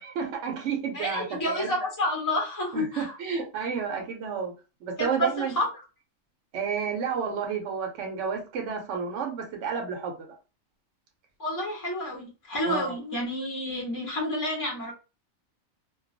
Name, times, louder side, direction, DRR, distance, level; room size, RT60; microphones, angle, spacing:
voice 1, 0.0-1.8 2.7-4.5 4.8-5.5 6.5-10.3 12.7-12.9, right 6 dB, 65° right, 0.8 m, -31 dB
voice 2, 0.9-3.1 5.0-5.3 5.5-5.7 11.4-14.9, left 1 dB, 25° left, 0.4 m, -29 dB
2.3 x 2.2 x 2.5 m
omnidirectional pair, 1.4 m